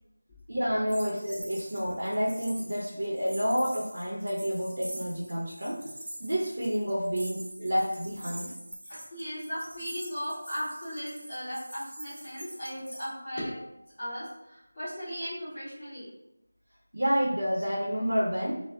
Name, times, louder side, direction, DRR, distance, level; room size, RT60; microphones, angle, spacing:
voice 1, 0.5-5.9 6.2-8.5 16.9-18.7, equal, 85° right, -4 dB, 0.6 m, -29 dB
sound 1, 0.9-13.1, right 1 dB, 45° right, 0.8 m, -45 dB
voice 2, 8.9-13.5 14.0-16.1, equal, 15° left, -15 dB, 0.6 m, -37 dB
3.7 x 2.1 x 2.3 m, 0.87 s
figure-of-eight pair, 175°, 0 cm